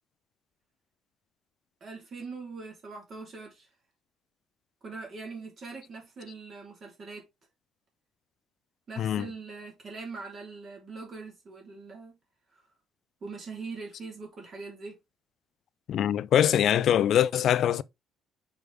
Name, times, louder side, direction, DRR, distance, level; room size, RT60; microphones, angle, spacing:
voice 1, 1.8-3.7 4.8-7.3 8.9-12.2 12.5-12.6 13.2-15.0, right 4 dB, 40° right, 3.3 m, -42 dB
voice 2, 9.0-9.3 15.9-17.8, left 10 dB, 55° left, 0.4 m, -23 dB
6.8 x 4.7 x 3.4 m
cardioid pair, 130°, 0 cm